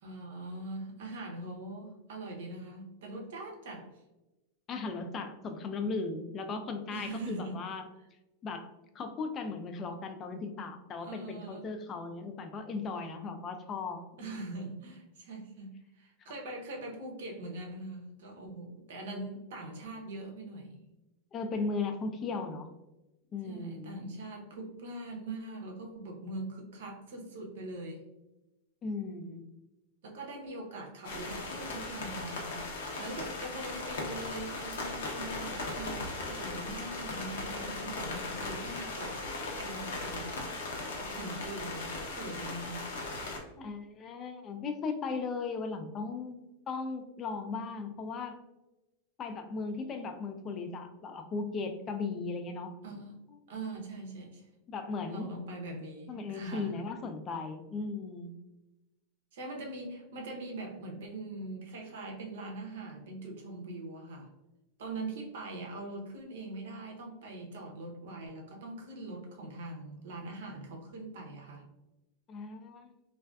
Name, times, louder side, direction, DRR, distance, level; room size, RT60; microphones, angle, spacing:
voice 1, 0.0-4.0 6.9-7.6 11.0-11.7 14.2-20.8 23.4-28.1 30.0-39.2 39.6-43.0 52.8-53.1 53.5-54.5 55.1-56.7 59.3-64.3 64.8-71.6, right 2 dB, 75° right, 1 dB, 0.6 m, -42 dB
voice 2, 4.7-7.9 8.4-14.5 21.3-22.7 23.3-24.1 28.8-29.4 43.6-46.4 46.7-48.4 49.2-52.8 54.7-55.3 56.1-58.3 72.3-72.9, left 4 dB, 30° left, 6 dB, 0.3 m, -37 dB
sound 1, 31.0-43.4, left 2 dB, 85° left, 0.6 m, -38 dB
2.5 x 2.2 x 2.2 m, 1.0 s
supercardioid pair, 125°, 0 cm